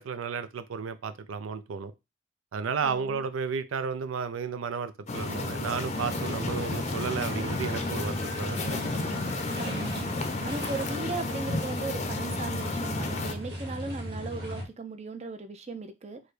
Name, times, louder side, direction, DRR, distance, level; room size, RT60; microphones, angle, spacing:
voice 1, 0.0-1.9 2.5-8.8, right 6 dB, 90° right, 0.4 m, -33 dB
voice 2, 2.8-3.2 9.6-10.1 10.4-16.2, right 3 dB, 35° right, 0.5 m, -37 dB
sound 1, 5.1-13.3, left 2 dB, 35° left, 0.5 m, -32 dB
sound 2, 5.1-14.6, equal, 50° right, 1.9 m, -38 dB
4.7 x 2.2 x 4.7 m
head